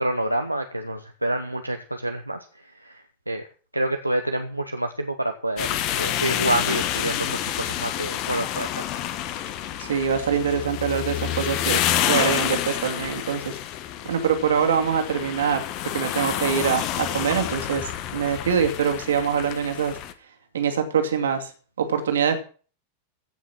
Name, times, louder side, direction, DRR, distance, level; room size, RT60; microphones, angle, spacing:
voice 1, 0.0-3.4 3.7-5.7 5.9-8.7, right 1 dB, 85° right, 5 dB, 1.0 m, -28 dB
sound 1, 5.6-20.1, left 11 dB, 40° left, 1.4 m, -28 dB
voice 2, 9.8-13.6 14.0-15.6 15.9-20.0 20.5-21.5 21.8-22.4, right 7 dB, 65° right, 6 dB, 2.5 m, -24 dB
16.0 x 6.2 x 7.2 m, 0.40 s
figure-of-eight pair, 90°, 0 cm